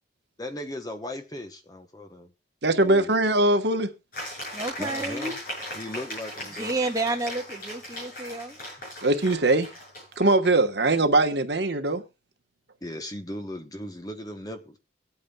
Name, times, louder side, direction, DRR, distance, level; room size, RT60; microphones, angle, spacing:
voice 1, 0.4-2.3 2.6-3.1 4.8-5.4 5.7-6.7 12.8-14.8, left 1 dB, 20° left, 1.0 m, -37 dB
voice 2, 2.6-3.9 9.0-9.7 10.2-12.0, right 2 dB, 60° right, 1.3 m, -21 dB
sound 1, 4.1-10.5, left 1 dB, 45° left, 7.5 m, -38 dB
voice 3, 4.5-5.4 6.5-8.6, right 2 dB, 20° right, 1.5 m, -30 dB
24.0 x 8.6 x 2.3 m
head